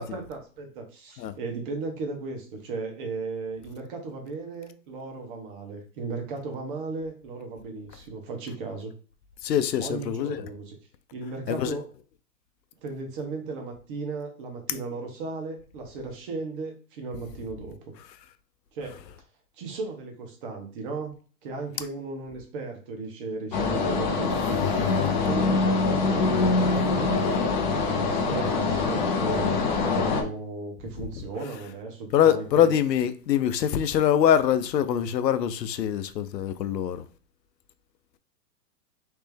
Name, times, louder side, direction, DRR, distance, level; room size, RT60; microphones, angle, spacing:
voice 1, 0.0-8.9 9.8-10.8 11.1-11.8 12.8-17.8 18.7-19.0 19.6-21.1 21.4-24.7 25.1-27.4 27.8-32.7, right 3 dB, 30° right, 0.9 m, -36 dB
voice 2, 9.4-10.4 11.5-11.8 32.1-37.0, left 9 dB, 85° left, 0.6 m, -23 dB
sound 1, 23.5-30.2, left 4 dB, 30° left, 0.5 m, -24 dB
3.3 x 3.3 x 3.3 m
hypercardioid pair, 145°, 49 cm